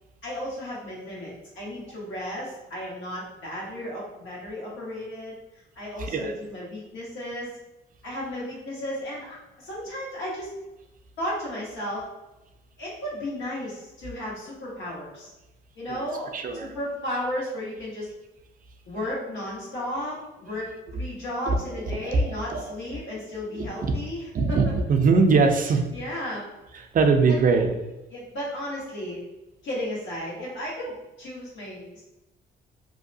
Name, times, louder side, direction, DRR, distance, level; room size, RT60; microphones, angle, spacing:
voice 1, 0.2-5.3 5.7-7.5 8.0-10.5 11.2-12.0 12.8-15.3 15.7-16.3 16.6-18.1 18.8-24.6 25.9-26.4 27.2-27.3 28.1-29.2 29.6-32.0, left 1 dB, 75° left, -6 dB, 1.4 m, -34 dB
voice 2, 6.0-6.3 15.9-16.1 16.3-16.7 21.9-22.2 22.5-23.0 23.5-23.7 24.3-25.9 26.7-27.7, right 4 dB, 45° right, 5 dB, 0.4 m, -22 dB
2.7 x 2.2 x 2.6 m, 1.0 s
cardioid pair, 90°, 20 cm